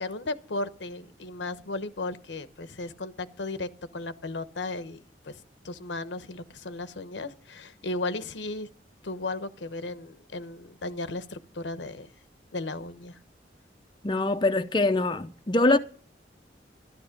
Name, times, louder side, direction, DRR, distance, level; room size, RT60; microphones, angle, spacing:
voice 1, 0.0-8.7 9.0-12.1 12.5-13.2, left 2 dB, 85° left, 0.9 m, -35 dB
voice 2, 14.0-15.8, left 2 dB, 25° left, 0.6 m, -23 dB
12.5 x 12.5 x 5.2 m
head